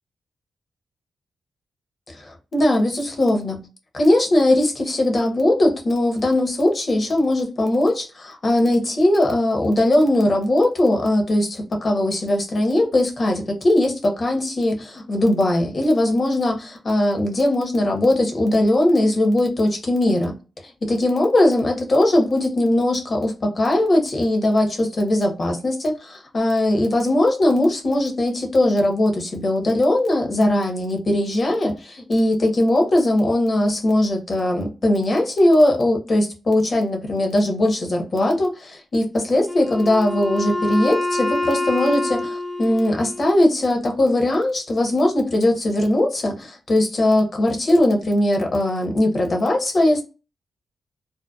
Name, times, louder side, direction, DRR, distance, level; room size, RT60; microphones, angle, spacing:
voice 1, 2.1-3.6 3.9-20.4 20.6-50.0, left 1 dB, 50° left, 0.9 m, -20 dB
Wind instrument woodwind instrument, 39.5-43.5, left 2 dB, ahead, 0.8 m, -26 dB
2.7 x 2.1 x 2.2 m
cardioid pair, 55°, 0 cm